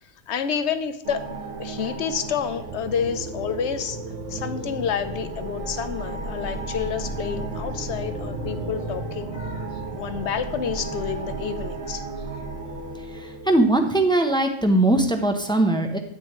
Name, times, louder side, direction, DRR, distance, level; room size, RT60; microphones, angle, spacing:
voice 1, 0.3-1.2 1.6-4.0 4.3-12.0 12.3-12.5, left 7 dB, 70° left, 10 dB, 1.0 m, -29 dB
sound 1, 1.0-13.7, right 2 dB, 80° right, 1.4 m, -33 dB
voice 2, 13.1-16.0, right 2 dB, 5° left, 5 dB, 0.7 m, -20 dB
9.3 x 8.9 x 3.1 m, 0.76 s
omnidirectional pair, 1.2 m